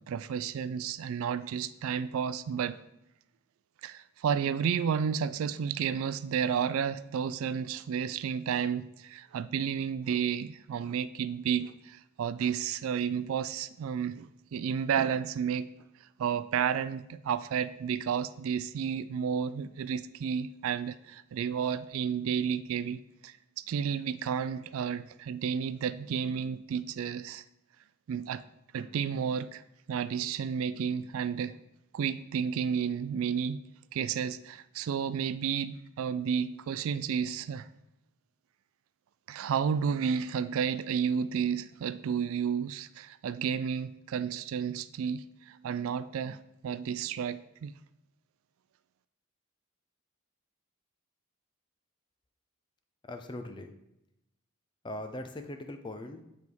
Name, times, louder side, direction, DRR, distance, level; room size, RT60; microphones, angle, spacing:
voice 1, 0.1-2.8 3.8-15.7 16.2-27.4 28.1-28.4 28.7-29.6 29.9-31.6 31.9-33.6 33.9-37.7 39.3-47.7, right 7 dB, 70° right, 0.3 m, -32 dB
voice 2, 53.1-53.7 54.8-56.2, left 1 dB, 20° left, 0.5 m, -40 dB
8.2 x 3.5 x 4.6 m
head